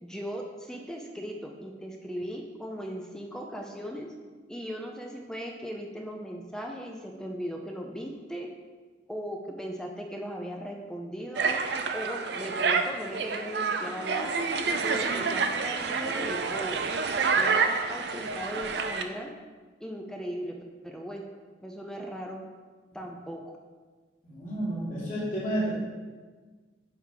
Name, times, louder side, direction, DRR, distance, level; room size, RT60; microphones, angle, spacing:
voice 1, 0.0-4.1 4.5-8.5 9.1-11.6 11.9-14.3 14.8-16.9 17.4-19.3 19.8-20.5 20.8-21.3 21.6-22.4 22.9-23.5, equal, 5° left, 1 dB, 0.5 m, -38 dB
sound 1, 11.4-19.0, right 5 dB, 60° right, 0.5 m, -28 dB
voice 2, 24.2-25.7, right 1 dB, 40° left, -9 dB, 2.5 m, -31 dB
9.5 x 3.6 x 5.6 m, 1.4 s
head